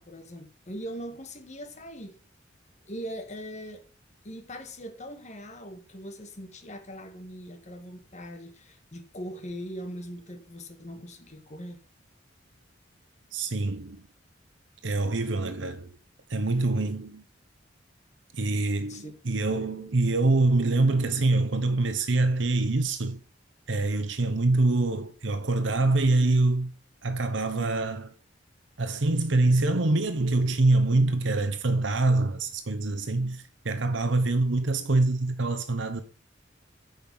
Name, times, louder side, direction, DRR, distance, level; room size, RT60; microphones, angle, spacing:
voice 1, 0.0-2.2 2.8-3.8 4.2-11.8 18.9-19.1, equal, 40° left, 1.5 m, -41 dB
voice 2, 13.3-14.1 14.8-16.0 16.3-17.2 18.3-23.2 23.7-26.7 27.0-28.1 28.8-36.0, right 2 dB, 70° right, 0.9 m, -25 dB
9.0 x 5.7 x 5.3 m
head